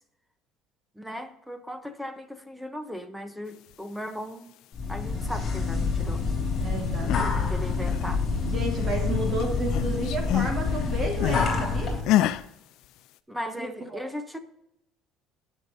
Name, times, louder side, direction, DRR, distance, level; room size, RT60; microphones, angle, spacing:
voice 1, 1.0-4.6 4.9-6.3 7.0-8.2 13.3-14.4, equal, ahead, 0.8 m, -37 dB
sound 1, 4.7-12.0, left 4 dB, 20° left, 3.4 m, -27 dB
voice 2, 6.6-7.5 8.4-12.0 13.6-14.1, right 2 dB, 30° right, 1.8 m, -32 dB
sound 2, 6.8-7.4 7.7-9.1 9.4-11.6 12.0-12.4, left 13 dB, 65° left, 0.5 m, -27 dB
19.0 x 6.4 x 2.7 m
cardioid pair, 150°, 0 cm